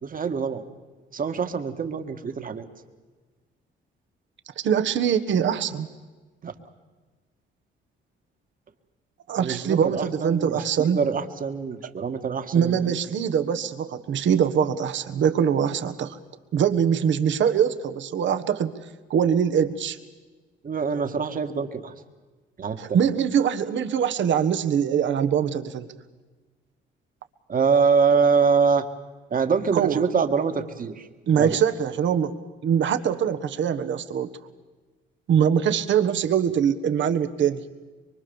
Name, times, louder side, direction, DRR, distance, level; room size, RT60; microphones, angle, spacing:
voice 1, 0.0-0.6 1.1-2.7 6.4-6.5 9.4-13.0 20.6-21.9 22.6-23.0 27.5-28.9 29.3-31.1 31.4-31.6, right 5 dB, 45° right, 8 dB, 1.8 m, -24 dB
voice 2, 4.6-5.9 9.3-11.0 12.5-16.2 16.5-18.7 19.1-20.0 22.8-25.9 29.7-30.0 31.3-34.3 35.3-37.6, right 8 dB, 70° right, 9 dB, 1.4 m, -23 dB
24.0 x 24.0 x 7.1 m, 1.3 s
cardioid pair, 90°, 20 cm